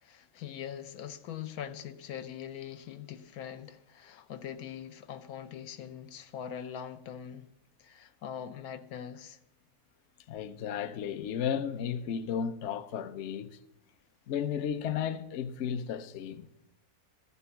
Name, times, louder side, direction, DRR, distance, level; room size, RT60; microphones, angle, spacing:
voice 1, 0.0-7.5 7.8-9.4, left 9 dB, 80° left, 1.2 m, -42 dB
voice 2, 10.3-13.6 14.3-16.5, left 8 dB, 60° left, 0.8 m, -34 dB
14.0 x 6.8 x 6.9 m
omnidirectional pair, 1.5 m